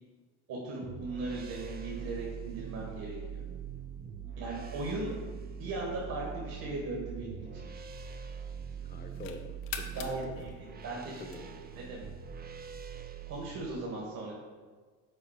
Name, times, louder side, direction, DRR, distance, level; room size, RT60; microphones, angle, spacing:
voice 1, 0.5-3.4 4.4-5.2 5.6-7.4 9.9-11.2 11.8-12.0 13.3-14.4, right 2 dB, 60° right, -3 dB, 1.9 m, -38 dB
sound 1, 0.8-13.6, right 7 dB, 25° right, 0.5 m, -43 dB
sound 2, 6.6-8.3 8.8-11.8, left 8 dB, 80° left, 0.9 m, -46 dB
voice 2, 8.8-10.6 10.9-11.7, left 3 dB, 25° left, 6 dB, 0.9 m, -48 dB
6.6 x 4.3 x 5.9 m, 1.5 s
supercardioid pair, 95°, 40 cm